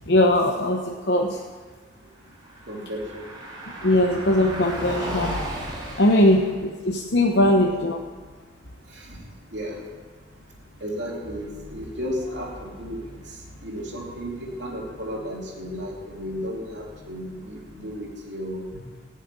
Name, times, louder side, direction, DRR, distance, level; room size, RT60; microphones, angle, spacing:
voice 1, 0.1-1.4 3.8-5.4 6.0-8.0, left 1 dB, 55° left, 1 dB, 0.9 m, -20 dB
Car passing by, 2.1-18.3, equal, 25° right, 3.2 m, -39 dB
voice 2, 2.7-3.2 7.3-7.4 8.9-9.2 9.5-9.8 10.8-13.1 13.6-18.7, equal, 60° right, -2 dB, 3.1 m, -33 dB
15.0 x 6.6 x 9.6 m, 1.5 s
head